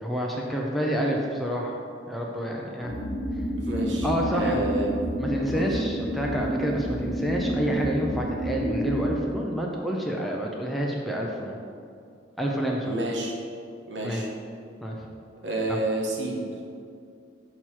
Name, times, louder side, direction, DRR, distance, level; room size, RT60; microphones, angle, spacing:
voice 1, 0.0-1.8 2.1-2.9 4.0-4.7 5.2-11.6 12.4-12.9 14.0-14.2 14.8-15.1 15.7-15.8, equal, ahead, -2 dB, 0.5 m, -28 dB
sound 1, 2.8-9.1, equal, 50° left, 1.3 m, -29 dB
voice 2, 3.6-5.0 5.5-5.7 12.8-13.3 13.9-14.3 15.4-16.5, right 1 dB, 65° right, -1 dB, 1.0 m, -30 dB
6.2 x 3.0 x 5.5 m, 2.4 s
head